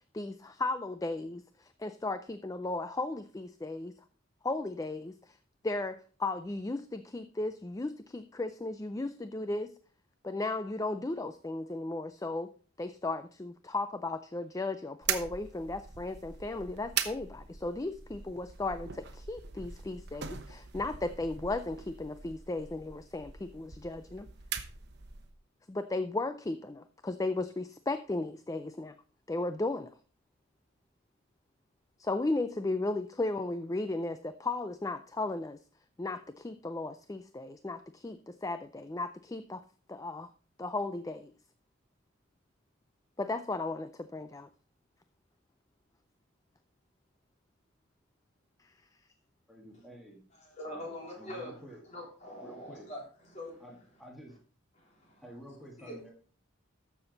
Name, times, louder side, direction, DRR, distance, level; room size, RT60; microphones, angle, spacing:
voice 1, 0.1-3.9 4.4-5.4 5.6-9.7 10.2-12.5 12.8-24.3 25.7-28.9 29.3-29.9 32.0-35.6 36.0-39.6 39.9-40.3 40.6-41.3 43.2-44.5 48.6-48.7, left 2 dB, 15° left, 0.4 m, -35 dB
sound 1, 15.0-25.4, right 8 dB, 50° right, 1.0 m, -41 dB
voice 2, 49.5-50.2 50.7-50.9 51.2-51.8 52.4-52.9 53.6-54.4 55.2-56.1, equal, ahead, 1.8 m, -50 dB
voice 3, 50.5-51.6 51.9-53.6 54.8-55.2 55.8-56.0, left 1 dB, 35° left, 3.5 m, -43 dB
12.5 x 7.0 x 4.0 m
head